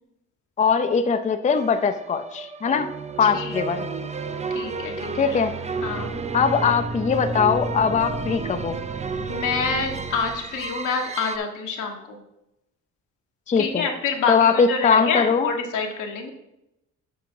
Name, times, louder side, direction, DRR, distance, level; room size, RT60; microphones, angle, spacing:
voice 1, 0.6-2.9 3.2-3.9 5.2-5.5 6.3-8.8 13.5-13.9 14.3-15.5, left 6 dB, 25° left, 8 dB, 0.5 m, -21 dB
sound 1, 1.5-11.4, right 3 dB, 25° right, 0.5 m, -31 dB
voice 2, 3.2-3.9 4.5-5.4 5.8-6.1 9.3-12.2 13.6-16.3, left 5 dB, 80° left, 2 dB, 1.4 m, -27 dB
7.6 x 4.8 x 5.4 m, 0.88 s
cardioid pair, 90°, 30 cm